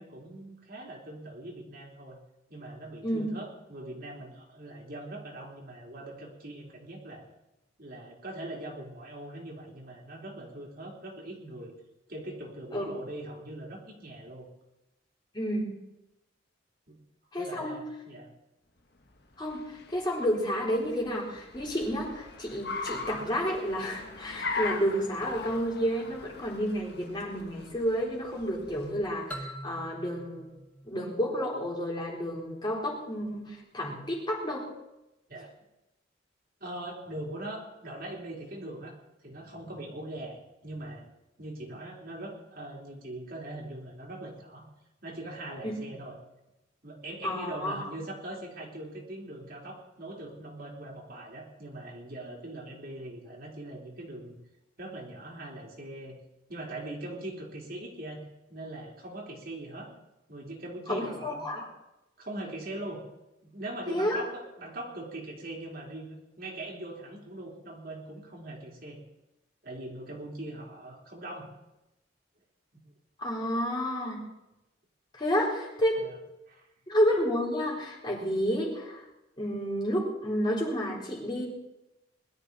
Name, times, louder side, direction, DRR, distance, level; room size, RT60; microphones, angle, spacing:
voice 1, 0.0-2.2 2.5-7.2 7.8-11.7 12.1-14.5 16.9-17.0 17.4-18.3 35.3-35.5 36.6-38.9 39.2-41.1 41.4-44.6 45.0-46.2 46.8-54.4 54.8-56.2 56.5-58.2 58.5-59.9 60.3-61.5 62.2-63.0 63.4-69.0 69.6-71.5 76.0-76.1 76.5-76.7, right 1 dB, 50° right, -2 dB, 3.9 m, -41 dB
voice 2, 15.3-15.7 17.3-17.8 19.4-30.5 30.8-34.7 45.6-45.7 47.2-47.9 60.9-61.7 63.9-64.2 73.2-74.2 75.1-76.1 76.9-79.0 79.4-81.5, equal, 25° left, -3 dB, 4.0 m, -30 dB
Car, 19.1-29.3, left 3 dB, 55° left, 1.4 m, -40 dB
sound 1, 29.3-32.0, right 1 dB, 5° left, 1.4 m, -44 dB
21.5 x 12.5 x 4.2 m, 0.93 s
head